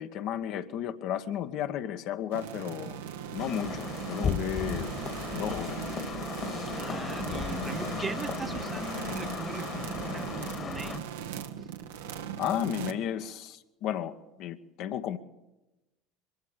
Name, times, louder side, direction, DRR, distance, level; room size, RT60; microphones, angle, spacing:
voice 1, 0.0-3.0 3.3-4.9 5.3-5.8 12.4-15.2, left 10 dB, 55° left, 8 dB, 1.1 m, -33 dB
sound 1, 2.3-12.9, right 9 dB, 75° right, 1.2 m, -38 dB
sound 2, 3.4-11.0, left 6 dB, 40° left, 1.8 m, -36 dB
voice 2, 6.8-11.7, right 4 dB, 25° right, 12 dB, 0.8 m, -41 dB
22.5 x 14.0 x 8.6 m, 1.0 s
hypercardioid pair, 75°, 0 cm